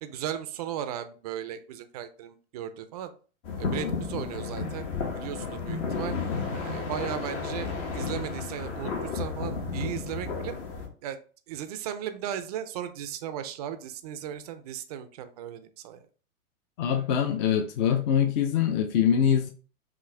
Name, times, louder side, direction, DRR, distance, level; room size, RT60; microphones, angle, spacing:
voice 1, 0.0-3.1 3.6-4.9 5.1-6.2 6.5-10.6 11.0-11.2 11.5-16.0, right 10 dB, 30° right, 0.4 m, -36 dB
sound 1, 3.4-10.9, left 4 dB, 60° left, 1.6 m, -32 dB
voice 2, 16.8-19.5, left 8 dB, 35° left, 0.4 m, -24 dB
6.0 x 2.6 x 3.2 m
hypercardioid pair, 135°, 42 cm